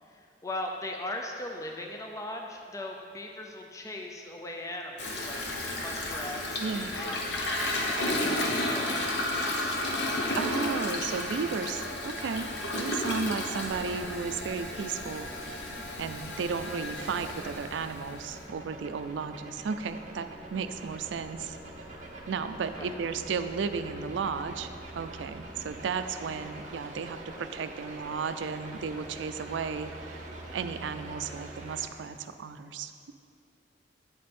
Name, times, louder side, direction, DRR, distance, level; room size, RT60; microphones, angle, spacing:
voice 1, 0.0-10.0 22.7-22.9, left 1 dB, 20° left, 2 dB, 0.4 m, -40 dB
Toilet flush, 5.0-18.4, left 1 dB, 65° left, 0.9 m, -32 dB
voice 2, 6.6-7.0 10.3-21.6 22.3-24.7 24.9-29.9 30.5-33.1, right 5 dB, 85° right, 10 dB, 0.4 m, -34 dB
sound 1, 13.6-31.8, right 2 dB, 45° right, 0.8 m, -45 dB
8.8 x 5.1 x 4.2 m, 2.4 s
head